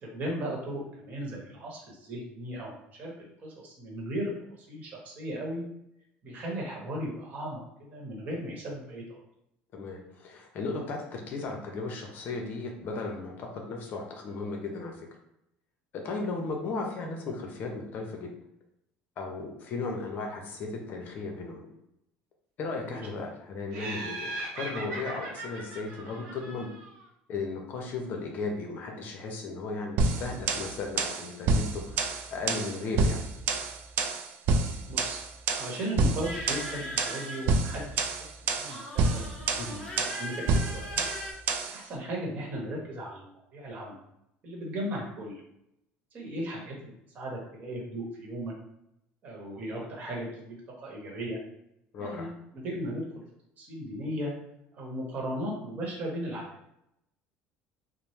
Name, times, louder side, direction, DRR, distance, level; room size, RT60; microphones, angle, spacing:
voice 1, 0.0-4.3 4.6-5.6 6.2-9.2 22.9-23.0 34.9-35.2 35.6-39.2 40.0-41.1 41.7-44.0 44.4-45.4 46.1-48.5 49.2-51.4 52.0-53.1 53.6-54.3 54.7-56.5, equal, 40° right, -2 dB, 1.0 m, -36 dB
voice 2, 9.7-15.1 15.9-18.3 19.2-21.6 22.6-26.7 27.3-33.2 39.6-39.8 51.9-52.3, left 3 dB, 50° left, 2 dB, 0.6 m, -36 dB
Laughter, 23.7-27.0, right 2 dB, 85° right, 0.8 m, -39 dB
sound 1, 30.0-41.8, right 4 dB, 60° right, 0.3 m, -28 dB
sound 2, 36.2-38.0 38.7-41.3, left 1 dB, 15° left, 0.9 m, -40 dB
2.9 x 2.0 x 3.1 m, 0.80 s
cardioid pair, 125°, 4 cm